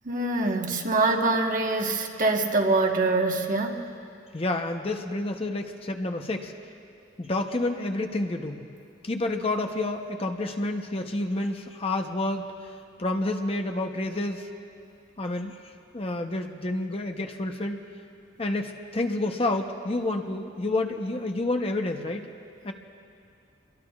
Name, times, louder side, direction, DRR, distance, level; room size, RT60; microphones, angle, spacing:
voice 1, 0.0-3.8, right 2 dB, 45° right, 2 dB, 1.2 m, -24 dB
voice 2, 4.3-6.5 7.2-8.6 9.0-12.4 13.0-14.5 15.2-15.6 15.9-17.8 18.4-22.3 22.6-22.7, left 2 dB, 30° left, 4 dB, 0.8 m, -29 dB
26.5 x 22.0 x 2.4 m, 2.5 s
head